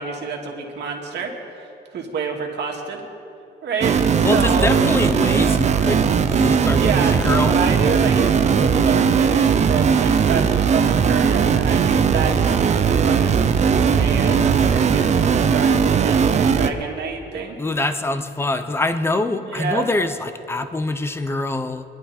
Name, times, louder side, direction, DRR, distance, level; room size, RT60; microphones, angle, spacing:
voice 1, 0.0-1.7 1.9-3.0 3.6-4.7 6.7-17.6 19.5-19.9, right 5 dB, 65° right, 1 dB, 2.1 m, -28 dB
sound 1, 3.8-16.7, right 6 dB, 40° right, 0.6 m, -18 dB
voice 2, 4.2-7.5 17.6-21.8, left 2 dB, 15° left, 10 dB, 0.6 m, -24 dB
23.0 x 11.5 x 4.3 m, 2.7 s
wide cardioid pair, 165°, 19 cm